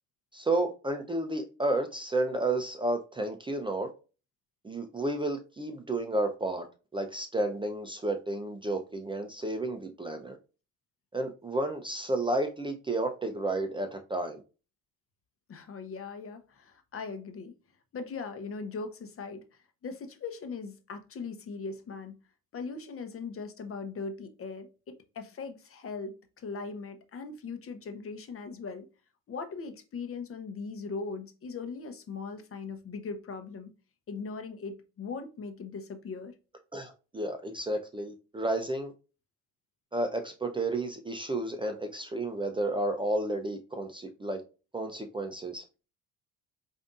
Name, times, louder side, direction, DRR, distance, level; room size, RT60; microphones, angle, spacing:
voice 1, 0.3-3.9 4.6-6.7 6.9-10.4 11.1-14.4 36.7-38.9 39.9-44.4 44.7-45.6, right 2 dB, 15° right, 0.5 m, -31 dB
voice 2, 15.5-17.5 17.9-22.1 22.5-28.9 29.3-33.7 34.1-36.3, left 4 dB, 40° left, 0.8 m, -39 dB
5.0 x 2.7 x 2.4 m
supercardioid pair, 85°, 36 cm